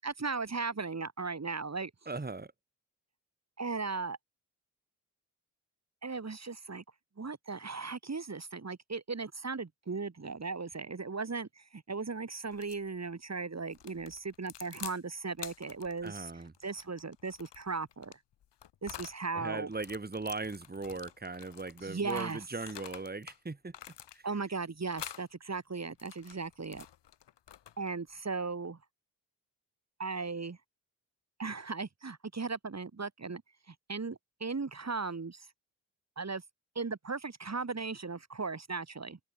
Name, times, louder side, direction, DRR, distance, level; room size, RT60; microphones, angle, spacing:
voice 1, 0.0-1.9 3.6-4.2 6.0-6.8 7.2-16.3 16.6-18.1 18.8-19.7 21.8-22.4 24.2-26.8 27.8-28.8 30.0-30.6 31.4-33.4 33.7-35.5 36.2-36.4 36.7-39.2, right 4 dB, 40° right, 6.6 m, -37 dB
voice 2, 2.1-2.5 16.0-16.5 19.3-23.7 24.1-24.2, right 3 dB, 20° right, 2.8 m, -39 dB
sound 1, 12.5-12.9 13.7-15.0 15.4-19.2 19.7-23.4 23.7-24.5 24.9-25.3 25.8-27.9, left 11 dB, 75° left, 7.8 m, -48 dB
open air
supercardioid pair, 50°, 42 cm